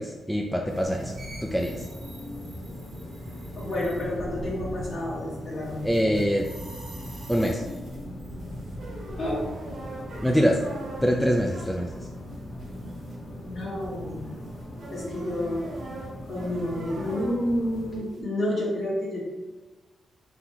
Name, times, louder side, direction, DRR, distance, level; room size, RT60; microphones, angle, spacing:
voice 1, 0.0-1.9 5.8-6.4 7.3-7.6 10.2-10.6 11.0-12.1, equal, 5° left, -1 dB, 0.4 m, -24 dB
sound 1, 0.7-11.9 12.3-13.2 13.6-13.9 14.4-18.2, right 1 dB, 70° right, 1.5 m, -42 dB
sound 2, 0.8-18.0, equal, 30° left, 1.1 m, -40 dB
sound 3, 1.5-15.0, left 1 dB, 85° left, 0.9 m, -47 dB
voice 2, 3.6-6.1 9.2-9.4 13.4-14.5 14.9-15.6 16.2-19.2, left 1 dB, 65° left, -7 dB, 1.4 m, -30 dB
4.0 x 3.5 x 2.9 m, 1.3 s
cardioid pair, 100°, 0 cm